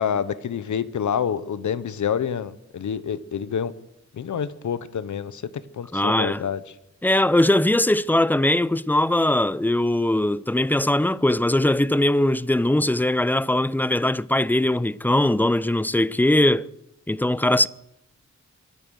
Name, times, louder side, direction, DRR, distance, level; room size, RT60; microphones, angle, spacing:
voice 1, 0.0-3.7 4.1-5.4 5.7-6.6, left 8 dB, 85° left, 0.9 m, -27 dB
voice 2, 5.9-6.4 7.0-16.7 17.1-17.7, left 1 dB, 5° left, 0.5 m, -20 dB
23.5 x 9.2 x 6.4 m
wide cardioid pair, 90°, 29 cm